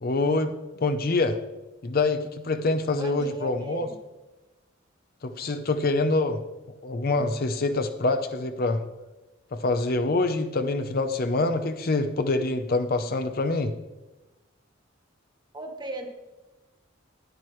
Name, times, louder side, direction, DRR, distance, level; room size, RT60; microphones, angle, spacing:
voice 1, 0.0-0.5 0.8-1.4 1.8-3.9 5.2-6.4 6.8-8.8 9.5-13.7, left 2 dB, 50° left, 9 dB, 0.6 m, -25 dB
voice 2, 3.0-4.0 15.5-16.1, right 2 dB, 20° right, 4 dB, 1.1 m, -37 dB
9.9 x 9.5 x 3.1 m, 1.1 s
head